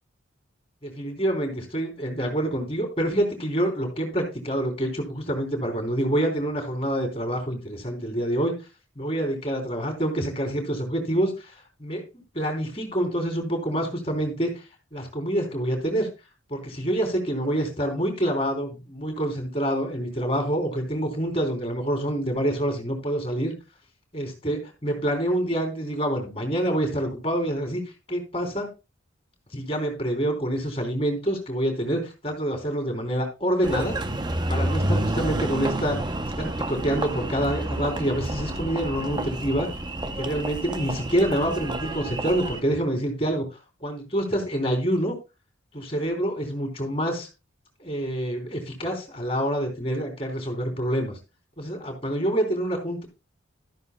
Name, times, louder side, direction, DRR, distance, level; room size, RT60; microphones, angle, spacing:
voice 1, 0.8-8.5 9.0-11.5 11.8-12.0 12.3-14.5 14.9-16.1 16.5-23.5 24.1-27.8 28.1-28.7 29.5-34.0 34.5-39.7 40.2-43.5 43.8-45.2 45.7-47.3 47.8-51.2 51.6-53.0, right 1 dB, 30° left, 4 dB, 3.3 m, -27 dB
Engine, 33.6-42.6, right 1 dB, 20° right, 0.7 m, -29 dB
13.0 x 11.0 x 2.2 m, 0.28 s
head